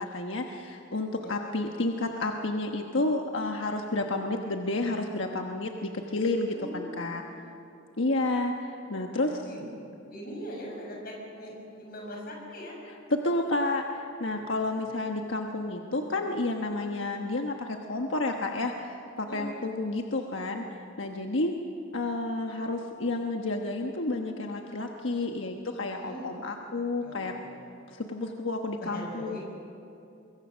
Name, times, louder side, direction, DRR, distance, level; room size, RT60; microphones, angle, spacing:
voice 1, 0.0-7.2 8.0-9.5 13.1-20.6 21.0-21.5 21.9-27.3 27.9-29.4, left 2 dB, 90° left, 3 dB, 1.3 m, -30 dB
voice 2, 6.4-7.7 9.2-9.6 10.1-12.8 14.4-14.5 14.8-14.9 19.2-19.6 25.9-26.3 27.0-27.8 28.8-29.4, equal, 50° left, -1 dB, 6.5 m, -42 dB
24.0 x 22.5 x 6.3 m, 2.6 s
head